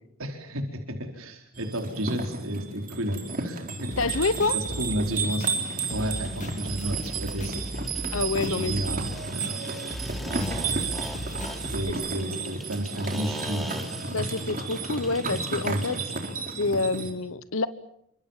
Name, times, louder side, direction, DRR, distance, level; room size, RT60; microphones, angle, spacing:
voice 1, 0.2-0.6 0.9-5.5 5.9-7.6 8.3-9.6 10.4-10.6 11.7-13.7 15.6-16.0, right 1 dB, 75° right, 4 dB, 4.3 m, -32 dB
sound 1, 1.5-17.1, right 4 dB, 40° right, 4.0 m, -32 dB
sound 2, 3.9-11.9, equal, 35° left, 2.8 m, -38 dB
voice 2, 4.0-4.6 8.1-8.7 11.9-12.0 14.1-16.0 16.5-17.7, left 3 dB, 70° left, 14 dB, 1.0 m, -27 dB
sound 3, 5.5-16.3, equal, ahead, 3.1 m, -42 dB
29.5 x 25.5 x 7.4 m, 0.74 s
head